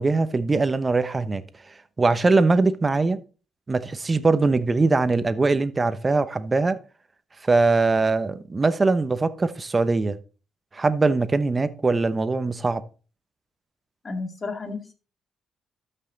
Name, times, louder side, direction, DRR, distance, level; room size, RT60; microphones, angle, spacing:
voice 1, 0.0-1.4 2.0-3.2 3.7-6.8 7.4-10.2 10.7-12.8, right 3 dB, 25° right, 0.9 m, -21 dB
voice 2, 14.0-14.9, left 3 dB, 35° left, 2.3 m, -32 dB
13.0 x 5.6 x 4.0 m
cardioid pair, 90°, 0 cm